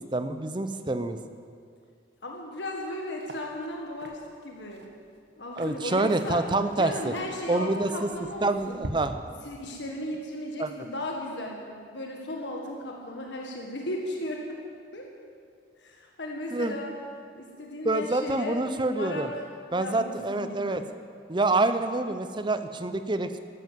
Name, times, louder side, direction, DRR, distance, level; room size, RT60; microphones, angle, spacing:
voice 1, 0.1-1.2 5.6-7.1 7.5-8.1 8.4-9.2 10.6-10.7 16.5-16.8 17.8-19.3 19.7-20.8 21.3-23.4, right 2 dB, 25° right, 10 dB, 0.7 m, -27 dB
voice 2, 2.2-4.2 4.4-4.9 5.4-6.4 6.8-8.9 9.4-14.6 14.9-15.1 15.8-16.9 17.3-18.6 18.9-19.3 19.7-20.8, left 1 dB, 80° left, 0 dB, 1.7 m, -36 dB
sound 1, 2.7-2.9 3.2-8.9, right 1 dB, 70° right, 1.3 m, -45 dB
13.5 x 13.0 x 7.6 m, 2.2 s
head